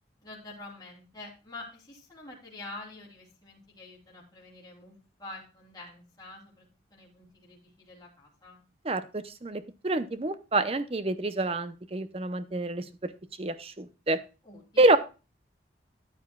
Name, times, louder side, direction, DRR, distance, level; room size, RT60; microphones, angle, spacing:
voice 1, 0.2-8.6 14.4-15.0, left 2 dB, 20° left, -4 dB, 3.2 m, -47 dB
voice 2, 8.8-13.1 13.4-14.2 14.8-15.0, right 2 dB, 30° right, 12 dB, 0.6 m, -27 dB
14.0 x 8.9 x 2.3 m, 0.31 s
head